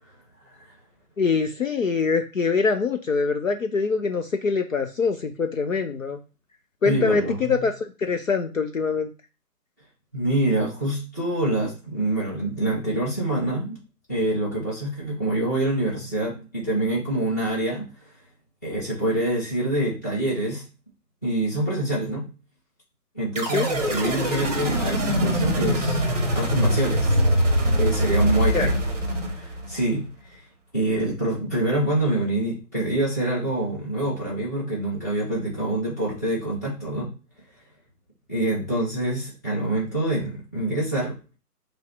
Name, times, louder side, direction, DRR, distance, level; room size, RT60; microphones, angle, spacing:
voice 1, 1.2-6.2 6.8-9.1 23.5-23.7 28.5-28.7, left 4 dB, 55° left, 6 dB, 0.5 m, -24 dB
voice 2, 6.8-7.5 10.1-13.8 14.1-17.9 18.6-20.6 21.2-22.2 23.1-26.0 26.3-27.1 27.8-28.8 29.2-30.4 30.7-37.1 38.3-41.4, right 1 dB, 10° left, -7 dB, 0.8 m, -26 dB
sound 1, 23.4-29.8, equal, 25° right, 0.8 m, -23 dB
5.1 x 2.0 x 3.3 m, 0.32 s
figure-of-eight pair, 150°, 48 cm